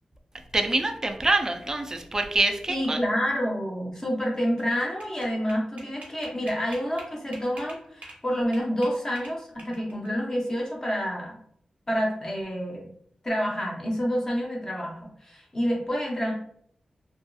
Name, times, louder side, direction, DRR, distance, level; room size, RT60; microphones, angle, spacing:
voice 1, 0.5-3.0, right 2 dB, 25° right, 5 dB, 0.3 m, -25 dB
voice 2, 2.7-11.4 11.9-12.8 13.2-16.3, equal, 25° left, -2 dB, 0.8 m, -28 dB
sound 1, 4.3-8.2 8.5-10.1, right 2 dB, 90° right, 0.7 m, -45 dB
2.6 x 2.3 x 2.2 m, 0.65 s
wide cardioid pair, 110°, 2 cm